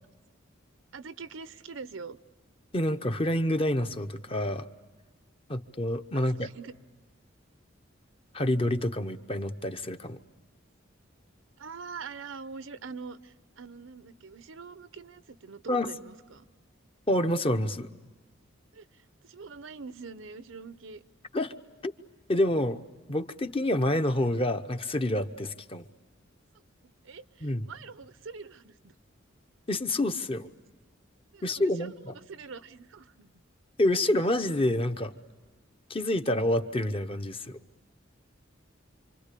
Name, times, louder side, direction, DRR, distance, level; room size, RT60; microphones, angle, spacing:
voice 1, 0.9-2.2 6.1-6.7 11.6-16.5 18.7-21.0 26.5-28.9 31.3-33.3, right 5 dB, 80° right, 14 dB, 0.8 m, -44 dB
voice 2, 2.7-4.7 5.5-6.5 8.3-10.2 15.7-15.9 17.1-17.9 21.3-21.5 21.8-21.9 22.3-22.8 23.1-25.8 27.4-27.7 29.7-30.5 31.4-32.1 33.8-35.1 35.9-37.6, left 1 dB, 30° left, 8 dB, 0.9 m, -28 dB
27.5 x 25.5 x 8.4 m, 1.3 s
head